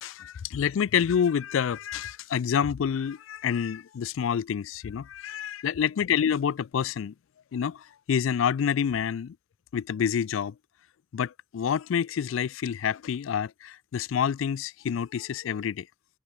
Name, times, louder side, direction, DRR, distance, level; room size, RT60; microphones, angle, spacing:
voice 1, 0.0-7.1 7.5-9.4 9.7-10.5 11.1-15.9, left 8 dB, 85° left, 0.4 m, -28 dB
head